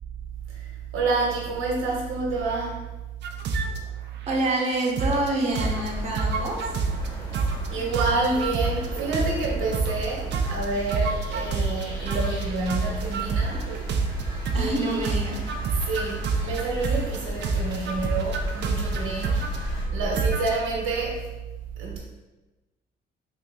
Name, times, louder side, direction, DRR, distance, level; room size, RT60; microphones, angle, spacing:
voice 1, 0.5-2.8 7.7-13.7 14.6-21.2 21.8-22.0, right 3 dB, 90° right, -3 dB, 0.9 m, -28 dB
sound 1, 3.2-3.8 4.3-5.3 5.6-5.9 6.1-7.1 7.3-7.7 7.9-10.1 10.3-14.8 15.0-17.2 17.4-19.6 20.1-20.7, right 4 dB, 60° right, 0.4 m, -28 dB
voice 2, 4.3-6.6 14.5-15.4, right 2 dB, 35° right, -3 dB, 0.8 m, -26 dB
sound 2, 5.5-19.9, equal, 20° left, 1.3 m, -36 dB
3.8 x 2.9 x 2.3 m, 1.1 s
cardioid pair, 90°, 20 cm